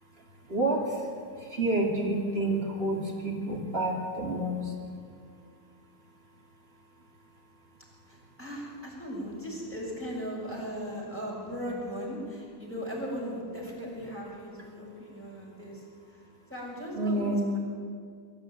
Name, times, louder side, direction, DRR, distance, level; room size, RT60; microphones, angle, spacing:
voice 1, 0.1-5.1 16.9-17.5, right 1 dB, 30° right, 1 dB, 2.9 m, -29 dB
voice 2, 8.1-16.2 16.5-17.6, equal, 5° left, -4 dB, 6.4 m, -38 dB
23.5 x 14.0 x 9.2 m, 2.2 s
omnidirectional pair, 2.1 m